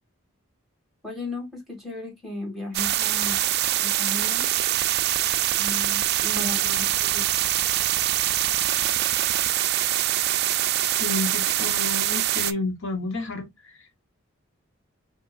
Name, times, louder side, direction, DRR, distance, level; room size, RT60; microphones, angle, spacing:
voice 1, 1.0-3.4 3.8-4.5 5.6-7.2, left 2 dB, ahead, 1.9 m, -36 dB
sound 1, 2.7-12.5, right 13 dB, 50° right, 0.4 m, -24 dB
voice 2, 6.3-6.8 10.8-14.0, left 3 dB, 65° left, 1.2 m, -32 dB
5.1 x 2.8 x 2.4 m
head